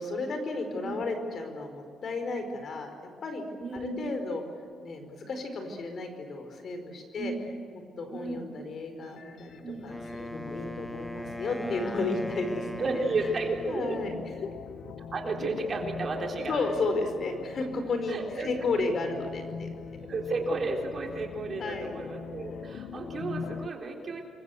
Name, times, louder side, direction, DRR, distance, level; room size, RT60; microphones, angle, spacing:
voice 1, 0.0-2.9 3.2-3.4 3.8-4.4 4.8-7.3 8.0-13.0 13.7-14.2 16.5-19.7 21.6-21.9, left 3 dB, 50° left, 6 dB, 4.9 m, -33 dB
voice 2, 3.6-4.0 7.2-7.5 8.1-8.4 9.6-9.9 12.8-14.0 15.1-16.6 18.1-18.5 20.1-24.2, right 3 dB, 40° right, 2 dB, 3.8 m, -32 dB
sound 1, 9.0-23.7, left 6 dB, 65° left, 1.3 m, -42 dB
Wind instrument woodwind instrument, 9.9-14.0, left 1 dB, 5° left, 1.1 m, -39 dB
28.0 x 23.5 x 8.0 m, 2.4 s
cardioid pair, 135°, 0 cm